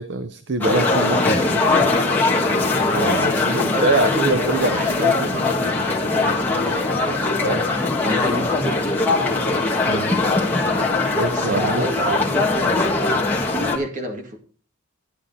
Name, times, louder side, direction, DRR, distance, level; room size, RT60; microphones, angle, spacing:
voice 1, 0.0-1.9 3.0-5.4 7.4-7.6 9.9-10.1 11.2-11.9, right 3 dB, 55° right, 10 dB, 0.6 m, -24 dB
sound 1, 0.6-13.8, left 3 dB, 10° left, 1.6 m, -21 dB
voice 2, 2.9-7.6 8.0-8.9 11.3-13.0 13.6-14.4, equal, 35° right, 4 dB, 2.0 m, -30 dB
11.5 x 10.0 x 4.1 m, 0.41 s
head